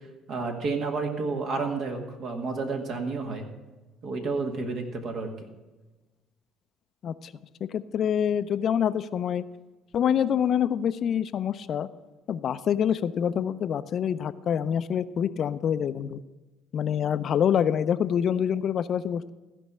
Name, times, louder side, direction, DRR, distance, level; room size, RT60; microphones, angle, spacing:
voice 1, 0.3-3.5 4.0-5.3, right 4 dB, 55° right, 3 dB, 1.8 m, -30 dB
voice 2, 7.7-9.4 9.9-11.9 12.3-16.2 16.7-19.3, left 8 dB, 55° left, 14 dB, 0.5 m, -26 dB
15.0 x 5.4 x 7.2 m, 1.1 s
hypercardioid pair, 60°, 0 cm